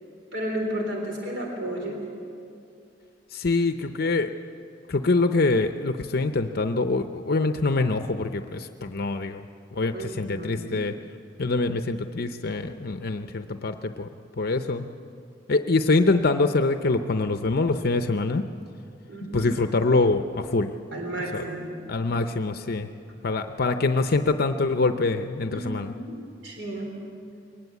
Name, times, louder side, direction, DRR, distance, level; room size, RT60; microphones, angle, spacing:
voice 1, 0.3-2.0 9.9-10.7 19.1-19.6 20.9-21.8 25.5-26.2 26.4-27.0, right 1 dB, 70° right, 0 dB, 3.7 m, -32 dB
voice 2, 3.3-4.3 4.9-9.4 9.7-10.9 11.4-14.1 14.4-14.8 15.5-18.4 19.3-20.7 21.3-21.4 21.9-22.9 23.2-25.9, left 3 dB, 55° left, 7 dB, 0.7 m, -24 dB
22.0 x 19.0 x 8.3 m, 2.5 s
head